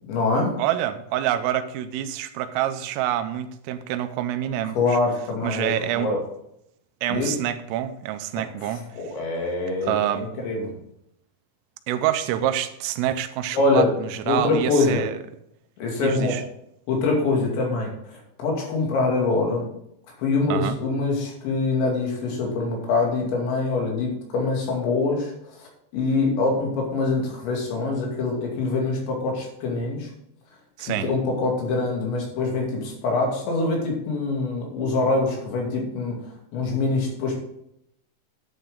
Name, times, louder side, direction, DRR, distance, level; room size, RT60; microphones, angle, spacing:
voice 1, 0.1-0.5 4.8-6.2 7.1-7.3 9.0-10.6 13.5-13.9 14.3-15.0 15.8-16.4 16.9-19.7 20.2-25.3 25.9-30.1 30.9-36.2 36.5-37.4, left 3 dB, 65° left, -1 dB, 4.6 m, -24 dB
voice 2, 0.6-5.0 5.4-6.1 7.0-8.8 9.8-10.3 11.9-15.2 16.0-16.4 20.5-20.8 30.8-31.1, right 11 dB, 85° right, 10 dB, 3.3 m, -26 dB
11.0 x 8.8 x 3.8 m, 0.76 s
omnidirectional pair, 5.8 m